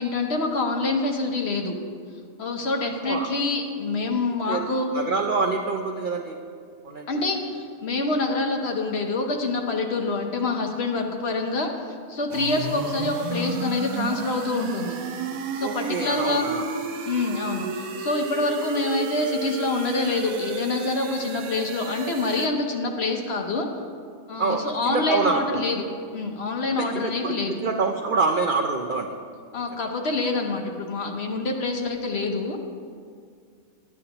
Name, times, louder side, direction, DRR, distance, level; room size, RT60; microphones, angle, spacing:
voice 1, 0.0-1.7 2.4-4.9 7.1-11.7 12.1-15.0 15.5-16.5 17.0-23.7 24.3-25.9 26.1-27.5 29.5-32.6, left 3 dB, 55° left, 3 dB, 0.9 m, -26 dB
voice 2, 4.9-6.4 6.8-7.1 15.6-16.7 24.4-25.6 26.8-29.1, right 4 dB, 65° right, 2 dB, 0.5 m, -26 dB
sound 1, 12.3-22.5, right 5 dB, 90° right, 1.1 m, -33 dB
11.5 x 9.5 x 2.9 m, 2.2 s
omnidirectional pair, 1.5 m